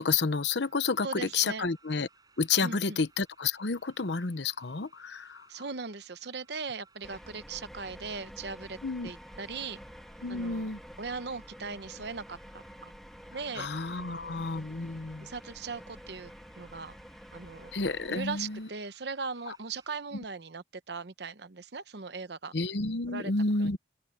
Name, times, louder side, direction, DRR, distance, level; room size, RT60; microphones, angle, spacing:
voice 1, 0.0-2.1 2.4-5.5 8.8-9.1 10.2-10.8 13.6-15.3 17.7-18.7 22.5-23.8, left 4 dB, 70° left, 0.9 m, -30 dB
sound 1, 0.6-19.9, right 4 dB, 20° right, 7.7 m, -65 dB
voice 2, 1.0-1.6 2.6-3.0 5.5-8.8 9.0-9.8 10.3-10.7 11.0-12.9 13.3-14.5 15.2-16.3 16.6-17.0 17.3-17.7 18.1-22.5 23.1-23.3 23.6-23.7, right 4 dB, 60° right, 0.9 m, -39 dB
sound 2, 7.0-18.6, equal, ahead, 1.8 m, -49 dB
head